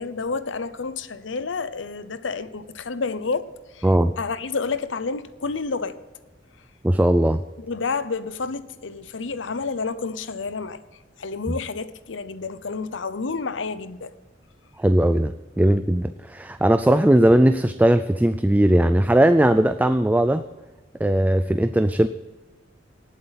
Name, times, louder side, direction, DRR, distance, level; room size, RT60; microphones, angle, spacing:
voice 1, 0.0-3.5 3.7-3.9 4.2-6.0 7.6-10.8 11.2-14.1, left 4 dB, 85° left, 0.7 m, -29 dB
voice 2, 6.8-7.4 11.5-11.6 14.8-20.4 21.0-22.1, right 1 dB, 10° right, 0.3 m, -18 dB
18.5 x 8.1 x 4.1 m
head